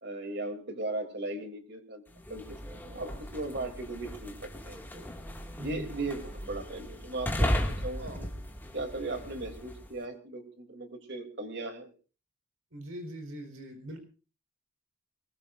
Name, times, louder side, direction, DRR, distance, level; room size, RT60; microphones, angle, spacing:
voice 1, 0.0-2.0 2.3-2.4 2.7-5.1 5.6-8.3 8.7-11.9, right 2 dB, 55° right, 6 dB, 3.0 m, -38 dB
sound 1, 2.1-9.9, equal, 10° left, 2.1 m, -36 dB
voice 2, 5.5-6.1 8.0-8.2 12.7-14.0, right 1 dB, 85° right, 6 dB, 4.2 m, -41 dB
23.0 x 20.5 x 2.6 m, 0.36 s
head